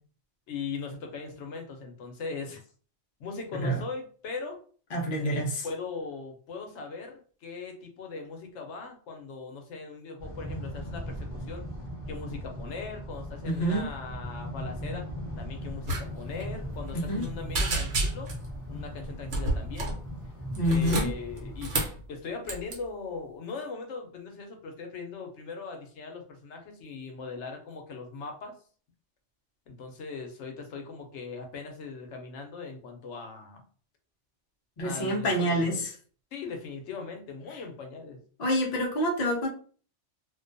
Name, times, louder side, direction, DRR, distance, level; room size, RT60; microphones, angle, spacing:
voice 1, 0.5-2.6 3.2-4.6 5.2-11.6 12.1-15.0 15.4-18.3 18.7-20.0 20.7-21.8 22.1-28.5 29.7-33.6 34.8-35.9 36.3-38.2, left 4 dB, 75° left, 3 dB, 0.9 m, -39 dB
voice 2, 4.9-5.6 13.4-13.9 16.9-17.2 20.6-21.1 34.8-35.8 38.4-39.5, equal, 50° left, 1 dB, 0.5 m, -27 dB
sound 1, 10.2-21.6, equal, 10° right, 1.0 m, -39 dB
sound 2, 15.8-16.0 16.3-16.5 16.9-17.3 17.5-18.5 19.3-20.0 20.6-22.0 22.5-22.8, right 2 dB, 75° right, 1.0 m, -29 dB
2.4 x 2.2 x 2.5 m, 0.43 s
omnidirectional pair, 1.2 m